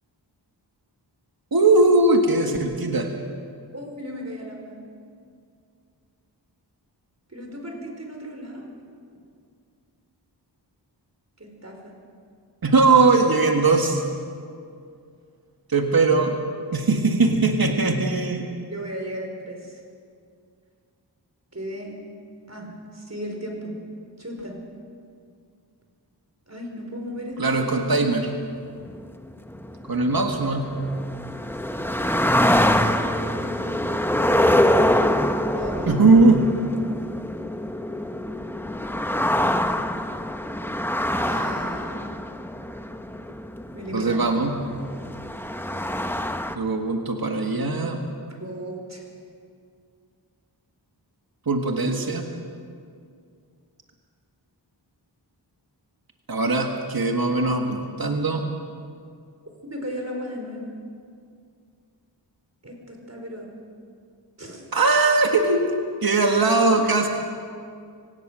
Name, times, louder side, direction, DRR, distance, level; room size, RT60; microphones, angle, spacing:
voice 1, 1.5-3.1 12.6-14.0 15.7-16.4 16.7-18.5 27.4-28.3 29.9-30.8 35.9-36.5 43.9-44.6 46.5-48.0 51.5-52.2 56.3-58.4 64.7-65.7 66.0-67.1, right 3 dB, 55° right, 3 dB, 1.7 m, -20 dB
voice 2, 3.7-4.8 7.3-8.7 11.4-11.9 18.7-19.8 21.5-22.0 22.5-23.7 24.2-24.6 26.5-28.3 33.0-33.8 35.5-36.2 41.2-42.1 43.7-44.3 48.4-49.0 51.8-52.0 59.6-60.8 62.6-63.5 64.4-64.6, equal, 35° right, 2 dB, 4.7 m, -35 dB
sound 1, 28.8-46.5, left 1 dB, 5° left, 1.0 m, -25 dB
25.0 x 17.5 x 6.3 m, 2.3 s
wide cardioid pair, 60°, 43 cm